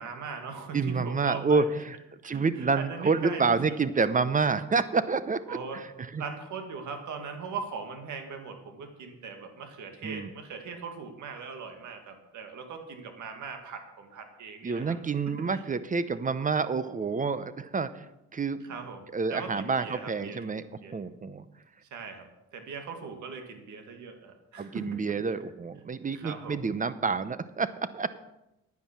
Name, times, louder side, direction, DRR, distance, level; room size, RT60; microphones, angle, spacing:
voice 1, 0.0-1.6 2.2-3.6 5.5-5.8 6.1-15.0 15.5-15.6 18.6-20.9 21.9-22.3 22.5-25.0 26.1-26.6, right 5 dB, 75° right, 5 dB, 2.1 m, -40 dB
voice 2, 0.7-1.9 2.2-6.2 10.0-10.3 14.6-18.1 18.3-18.6 19.1-20.6 20.9-21.4 24.6-28.2, right 4 dB, 25° right, 14 dB, 0.7 m, -28 dB
9.9 x 9.6 x 6.1 m, 0.91 s
cardioid pair, 90°, 30 cm